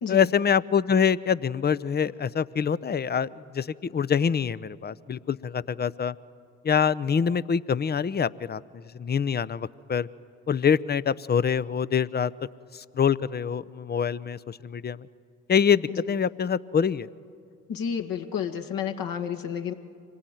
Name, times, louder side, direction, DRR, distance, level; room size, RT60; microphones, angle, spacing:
voice 1, 0.1-3.3 3.5-6.1 6.6-10.1 10.5-12.3 12.7-15.1 15.5-17.1, left 7 dB, 25° left, 18 dB, 0.6 m, -25 dB
voice 2, 17.7-19.7, left 8 dB, 60° left, 4 dB, 1.9 m, -31 dB
25.5 x 19.0 x 9.2 m, 2.3 s
hypercardioid pair, 50°, 39 cm